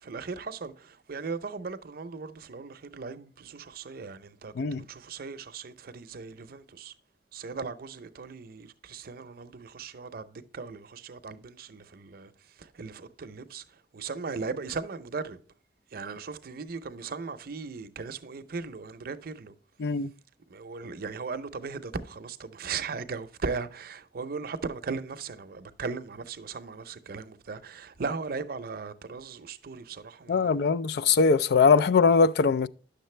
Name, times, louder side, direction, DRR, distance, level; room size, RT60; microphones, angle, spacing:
voice 1, 0.0-6.9 7.3-12.3 12.6-13.6 13.9-15.4 15.9-19.5 20.5-30.6 30.9-31.1, right 4 dB, 55° right, 0.6 m, -38 dB
voice 2, 30.3-32.7, left 5 dB, 65° left, 0.4 m, -21 dB
9.9 x 6.6 x 3.2 m
head